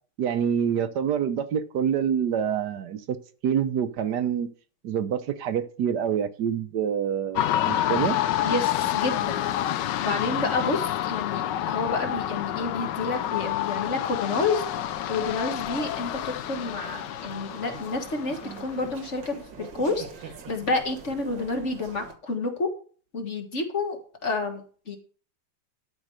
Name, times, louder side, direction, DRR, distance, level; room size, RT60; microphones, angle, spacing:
voice 1, 0.2-3.2 3.4-4.5 4.8-8.2, right 8 dB, 70° right, 11 dB, 1.3 m, -26 dB
sound 1, 7.4-19.1, left 12 dB, 80° left, 1.3 m, -29 dB
voice 2, 8.4-9.4 10.0-14.7 15.1-20.0 20.5-22.7 23.1-25.0, left 3 dB, 40° left, 5 dB, 1.8 m, -29 dB
sound 2, 14.6-22.1, right 5 dB, 85° right, 2.3 m, -44 dB
12.5 x 5.2 x 6.4 m, 0.42 s
omnidirectional pair, 2.0 m